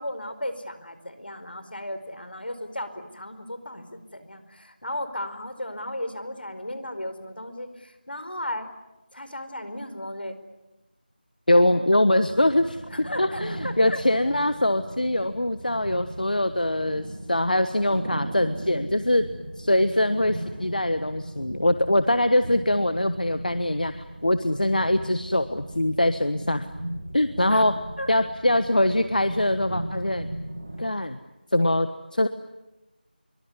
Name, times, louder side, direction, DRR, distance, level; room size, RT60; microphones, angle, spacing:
voice 1, 0.0-8.7 9.1-10.4 11.6-11.8 12.9-14.0 27.5-27.6 28.0-28.1, left 1 dB, 75° left, 10 dB, 4.8 m, -35 dB
voice 2, 11.5-12.8 13.2-19.2 19.6-26.7 27.1-27.7 28.1-30.3 30.8-31.2 31.5-32.3, left 1 dB, 55° left, 11 dB, 1.3 m, -23 dB
sound 1, 12.2-30.8, right 1 dB, 20° right, 3.3 m, -37 dB
26.0 x 23.5 x 9.6 m, 1.0 s
figure-of-eight pair, 180°, 5 cm